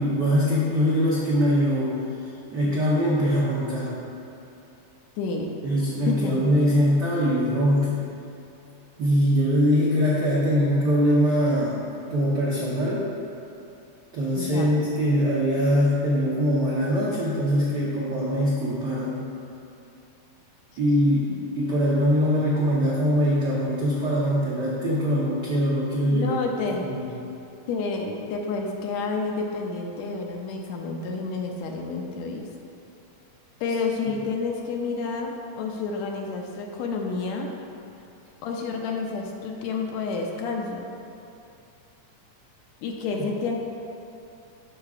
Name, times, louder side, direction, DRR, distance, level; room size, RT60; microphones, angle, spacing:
voice 1, 0.0-2.0 2.5-4.0 5.6-8.1 9.0-11.8 12.1-13.1 14.1-19.3 20.8-26.4 26.8-27.1 43.1-43.3, equal, 85° right, -7 dB, 0.9 m, -22 dB
voice 2, 5.2-5.5 6.1-6.3 14.4-14.7 21.3-21.4 26.1-26.9 27.7-32.4 33.6-37.5 38.4-40.9 42.8-43.6, left 4 dB, 80° left, 1 dB, 1.8 m, -29 dB
13.0 x 4.8 x 2.4 m, 2.7 s
omnidirectional pair, 3.4 m